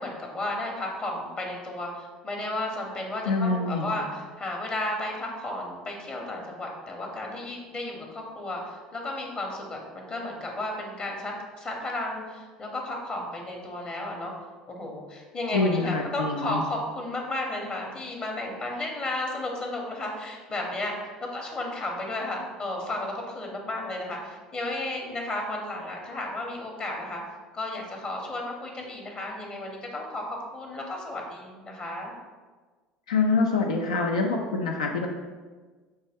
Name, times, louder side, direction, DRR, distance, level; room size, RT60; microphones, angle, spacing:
voice 1, 0.0-14.3 14.7-20.9 21.2-27.2 27.5-32.1, left 1 dB, 35° left, 0 dB, 0.8 m, -33 dB
voice 2, 3.3-3.9 15.5-16.6 33.1-35.1, left 3 dB, 85° left, 1 dB, 0.4 m, -25 dB
5.2 x 2.2 x 3.4 m, 1.4 s
hypercardioid pair, 70°, 3 cm